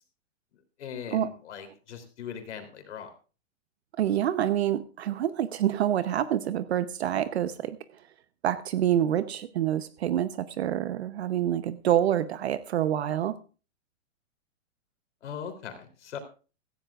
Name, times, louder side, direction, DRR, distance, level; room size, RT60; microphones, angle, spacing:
voice 1, 0.8-3.1 15.2-16.2, left 8 dB, 65° left, 3.4 m, -40 dB
voice 2, 4.0-7.8 8.4-13.4, right 11 dB, 55° right, 0.9 m, -27 dB
17.0 x 15.0 x 2.4 m
hypercardioid pair, 170°, 37 cm